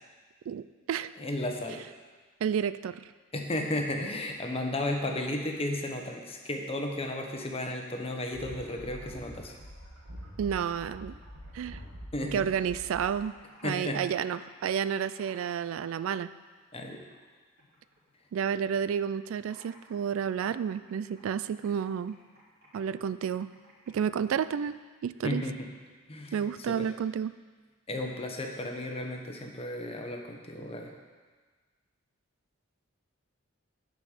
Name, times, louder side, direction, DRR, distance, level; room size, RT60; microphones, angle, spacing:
voice 1, 0.5-1.1 2.4-3.1 10.4-11.2 11.5-11.8 12.3-13.3 13.6-16.3 18.3-22.2 22.7-23.5 23.9-25.4 26.3-27.4, right 8 dB, 70° right, 15 dB, 0.3 m, -31 dB
voice 2, 1.2-1.8 3.3-9.6 12.1-12.4 13.6-14.0 16.7-17.0 25.2-25.7 26.1-26.9 27.9-30.9, left 1 dB, 30° left, 2 dB, 1.1 m, -34 dB
sound 1, 8.3-13.1, equal, 85° right, 2.0 m, -45 dB
Computer keyboard, 12.3-15.8 16.0-17.3 17.6-18.9 19.2-24.3, right 1 dB, 50° right, 3.3 m, -59 dB
10.0 x 5.3 x 6.7 m, 1.4 s
head